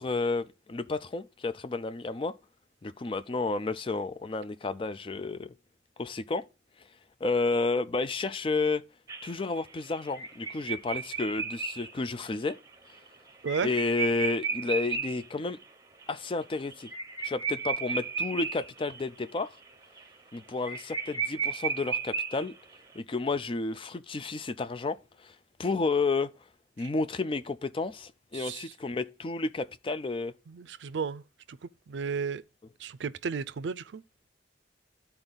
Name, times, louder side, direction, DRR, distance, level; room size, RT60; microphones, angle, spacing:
voice 1, 0.0-2.3 2.8-5.5 6.0-6.4 7.2-8.8 9.2-12.6 13.6-15.6 16.1-16.9 17.2-19.5 20.3-22.5 22.9-25.3 25.6-26.3 26.8-30.3, left 3 dB, 30° left, 0.4 m, -31 dB
sound 1, 9.1-15.3 15.6-15.7 16.0-16.1 16.4-19.0 19.4-19.7 20.0-20.1 20.3-20.4 20.7-22.7, right 5 dB, 20° right, 0.9 m, -34 dB
voice 2, 28.3-28.7 30.5-31.2 31.5-32.4 32.8-34.0, right 5 dB, 75° right, 0.4 m, -34 dB
11.5 x 4.4 x 3.9 m
head